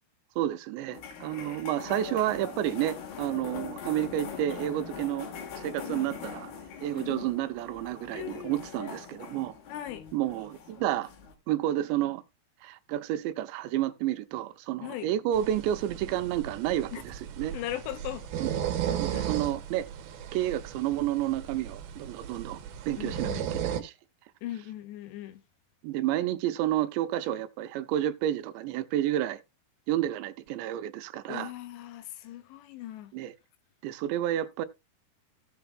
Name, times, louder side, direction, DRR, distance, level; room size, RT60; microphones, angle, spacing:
voice 1, 0.4-5.3 5.6-6.5 6.8-9.5 10.1-11.1 11.5-12.2 12.6-17.5 18.4-18.5 19.0-19.9 20.3-22.6 22.9-23.9 25.8-29.4 29.9-31.5 33.1-33.3 33.8-34.7, right 12 dB, 85° right, 2.9 m, -30 dB
sound 1, 0.9-11.3, left 7 dB, 65° left, 3.4 m, -42 dB
voice 2, 1.3-1.7 5.9-6.1 6.9-7.3 8.1-8.6 9.7-10.1 14.8-15.1 16.9-17.0 17.5-18.3 18.9-19.3 23.0-23.4 24.4-25.4 31.3-33.1, left 13 dB, 85° left, 3.0 m, -39 dB
sound 2, 15.3-23.8, right 9 dB, 70° right, 2.7 m, -35 dB
16.5 x 7.0 x 2.3 m
omnidirectional pair, 5.1 m